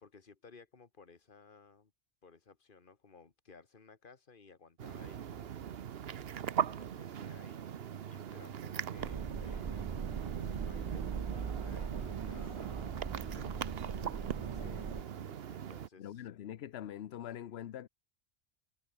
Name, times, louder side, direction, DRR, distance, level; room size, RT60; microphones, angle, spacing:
voice 1, 0.0-1.9 2.2-5.6 6.6-9.9 10.5-13.6 15.5-16.2 17.1-17.2, left 4 dB, 50° left, 1.7 m, -58 dB
sound 1, 4.8-15.9, right 9 dB, 60° right, 1.0 m, -40 dB
sound 2, 9.0-15.0, right 6 dB, 35° right, 0.5 m, -40 dB
voice 2, 14.5-15.4 16.0-17.9, left 10 dB, 65° left, 0.9 m, -45 dB
omnidirectional pair, 1.2 m